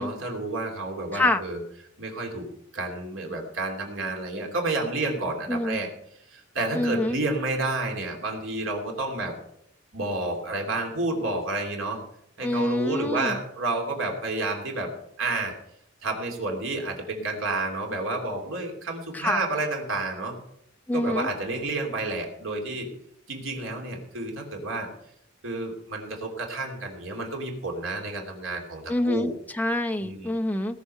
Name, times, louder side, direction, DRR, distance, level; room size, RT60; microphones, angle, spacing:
voice 1, 0.0-1.6 2.0-2.4 2.7-5.9 6.3-9.3 9.9-12.0 12.4-15.5 16.0-20.4 20.9-22.9 23.3-24.9 25.4-29.3 30.0-30.3, right 2 dB, 70° right, 1 dB, 3.1 m, -30 dB
voice 2, 5.5-5.8 6.7-7.2 12.4-13.4 19.1-19.4 20.9-21.3 28.9-30.8, left 1 dB, 10° left, 4 dB, 0.7 m, -26 dB
18.5 x 6.9 x 6.7 m, 0.73 s
head